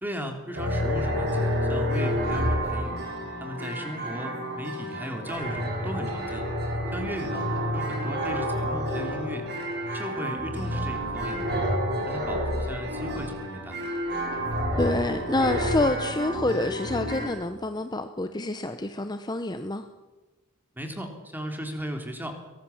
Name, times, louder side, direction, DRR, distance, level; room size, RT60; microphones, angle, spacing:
voice 1, 0.0-3.0 3.4-6.4 6.9-7.4 7.7-9.5 9.9-11.6 12.0-13.8 20.7-22.4, equal, 10° right, 4 dB, 3.2 m, -36 dB
sound 1, 0.5-17.3, equal, 55° right, 6.3 m, -29 dB
voice 2, 14.8-19.8, left 2 dB, 20° left, 9 dB, 0.9 m, -27 dB
23.0 x 18.5 x 7.3 m, 1.2 s
head